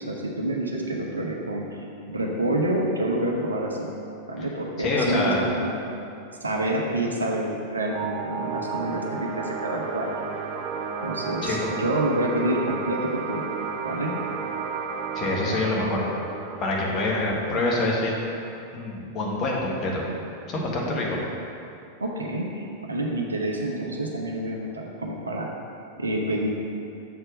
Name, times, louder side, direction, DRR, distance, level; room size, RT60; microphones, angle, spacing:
voice 1, 0.1-1.7 2.1-3.9 4.3-5.7 6.4-9.0 9.3-10.1 11.0-13.4 13.8-14.1 22.0-25.5 26.0-26.5, right 1 dB, 75° right, 0 dB, 0.8 m, -27 dB
voice 2, 4.8-5.4 11.4-11.7 15.1-16.2 16.6-18.1 18.7-20.0 20.5-21.2, left 2 dB, 30° left, -3 dB, 1.4 m, -26 dB
sound 1, 7.9-19.0, right 6 dB, 40° right, 0.5 m, -33 dB
6.8 x 4.5 x 5.1 m, 2.7 s
figure-of-eight pair, 90°, 0 cm